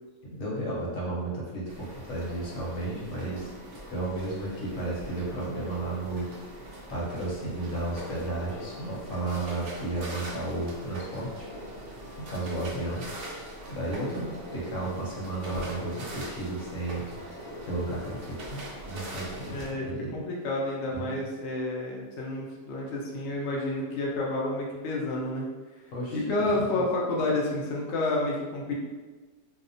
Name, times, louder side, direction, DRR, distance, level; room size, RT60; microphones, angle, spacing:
voice 1, 0.3-3.5 3.9-6.3 6.9-11.5 12.3-13.0 13.7-17.1 17.6-20.2 20.9-21.1 25.9-26.2, right 2 dB, 60° left, -5 dB, 1.0 m, -33 dB
sound 1, 1.7-19.7, right 1 dB, 70° right, 0.7 m, -42 dB
voice 2, 19.5-25.5 26.1-28.7, left 2 dB, 90° left, -3 dB, 0.5 m, -30 dB
2.7 x 2.1 x 2.6 m, 1.3 s
omnidirectional pair, 1.7 m